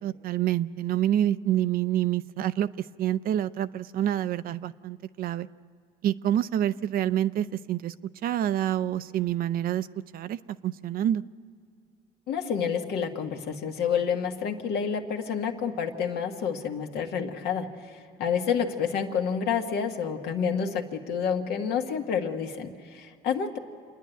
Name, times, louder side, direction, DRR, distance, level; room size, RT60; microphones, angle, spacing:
voice 1, 0.0-2.7 3.0-5.5 6.0-7.9 8.2-9.9 10.1-11.2, right 11 dB, 60° right, 14 dB, 0.5 m, -27 dB
voice 2, 12.3-23.6, left 7 dB, 75° left, 3 dB, 1.7 m, -29 dB
27.5 x 10.5 x 9.2 m, 2.3 s
cardioid pair, 110°, 17 cm